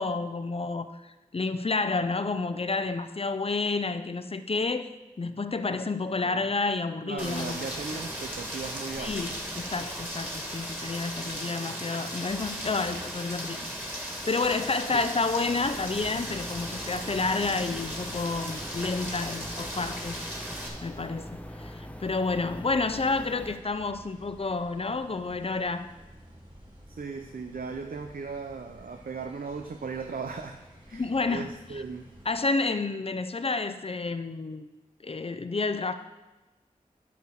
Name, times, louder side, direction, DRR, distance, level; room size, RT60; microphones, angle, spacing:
voice 1, 0.0-4.9 5.2-7.6 7.9-8.0 9.0-13.6 14.3-20.2 20.4-20.5 20.8-25.9 30.9-31.8 32.3-34.7 35.0-35.9, left 3 dB, 40° left, 10 dB, 0.6 m, -30 dB
voice 2, 7.0-9.2 14.9-15.0 26.9-32.1, right 4 dB, 85° right, 5 dB, 0.6 m, -37 dB
Rain, 7.2-20.7, equal, 15° right, 2.3 m, -37 dB
sound 1, 15.5-23.6, left 1 dB, 10° left, 0.9 m, -42 dB
sound 2, 23.1-32.3, equal, 30° right, 3.5 m, -52 dB
11.5 x 4.4 x 6.8 m, 1.1 s
wide cardioid pair, 60°, 15 cm